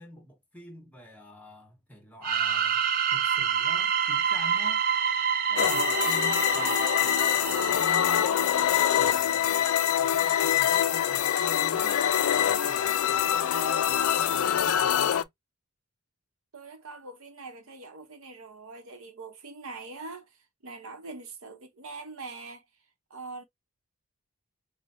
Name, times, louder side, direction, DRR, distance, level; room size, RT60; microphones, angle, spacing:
voice 1, 0.0-2.8 3.1-4.8 5.5-8.5 9.0-9.6 10.0-12.0 12.3-15.3, left 1 dB, 5° left, 1.0 m, -46 dB
sound 1, 2.2-8.9, right 7 dB, 40° right, 0.3 m, -28 dB
sound 2, 5.6-15.2, left 10 dB, 70° left, 0.3 m, -25 dB
sound 3, 8.5-15.2, left 4 dB, 35° left, 1.0 m, -39 dB
voice 2, 16.5-22.6 23.1-23.4, right 3 dB, 65° right, 0.8 m, -43 dB
4.8 x 2.1 x 2.5 m
head